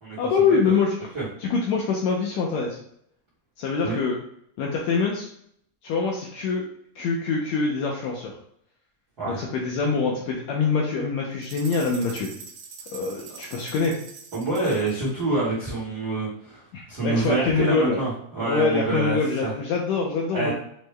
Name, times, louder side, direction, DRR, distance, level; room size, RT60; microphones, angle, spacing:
voice 1, 0.2-1.1 1.4-2.8 3.6-4.2 4.6-5.3 5.8-6.6 6.9-8.3 9.2-12.3 12.9-13.9 16.7-18.0 18.5-20.5, left 4 dB, 80° left, -1 dB, 1.6 m, -24 dB
sound 1, 11.4-15.1, right 6 dB, 85° right, 2.3 m, -43 dB
voice 2, 14.3-16.6 16.9-19.5 20.3-20.5, right 2 dB, 50° right, -9 dB, 1.2 m, -26 dB
6.2 x 2.1 x 3.2 m, 0.69 s
omnidirectional pair, 3.6 m